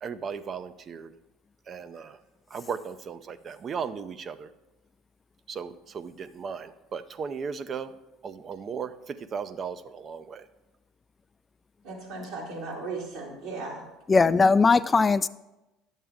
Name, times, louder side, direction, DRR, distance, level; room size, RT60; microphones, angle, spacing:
voice 1, 0.0-1.1 1.7-2.2 2.5-4.5 5.5-7.9 8.2-10.5, right 6 dB, 40° right, 13 dB, 0.5 m, -36 dB
voice 2, 11.8-13.8 14.1-14.3, right 3 dB, 70° right, -4 dB, 3.1 m, -37 dB
voice 3, 14.1-15.3, left 4 dB, 25° left, 15 dB, 0.3 m, -19 dB
11.0 x 7.3 x 3.6 m, 0.99 s
hypercardioid pair, 80°, 0 cm